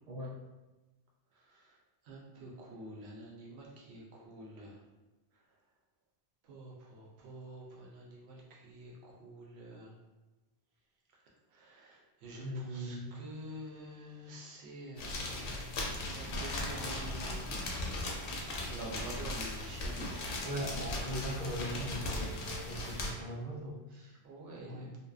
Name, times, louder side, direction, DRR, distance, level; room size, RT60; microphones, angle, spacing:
voice 1, 2.1-4.7 6.5-9.9 11.5-17.6 18.6-20.1 24.2-25.0, right 1 dB, 75° right, -2 dB, 0.8 m, -48 dB
voice 2, 12.4-13.2 20.4-24.1 24.6-24.9, equal, 50° right, -4 dB, 0.5 m, -40 dB
sound 1, 15.0-23.1, left 1 dB, 65° left, 0.7 m, -38 dB
2.6 x 2.1 x 2.3 m, 1.1 s
omnidirectional pair, 1.1 m